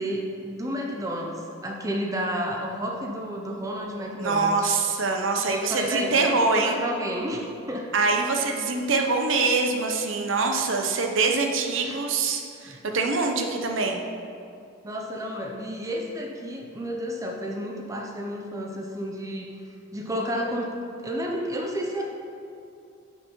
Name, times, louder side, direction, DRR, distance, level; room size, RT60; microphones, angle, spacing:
voice 1, 0.0-4.7 5.5-7.9 10.6-10.7 11.8-12.0 12.6-12.8 14.8-19.5 19.9-20.7 21.0-22.0, equal, 15° right, 0 dB, 0.6 m, -31 dB
voice 2, 4.2-6.8 7.9-14.0, right 3 dB, 65° right, 3 dB, 0.7 m, -24 dB
9.1 x 5.5 x 4.4 m, 2.5 s
head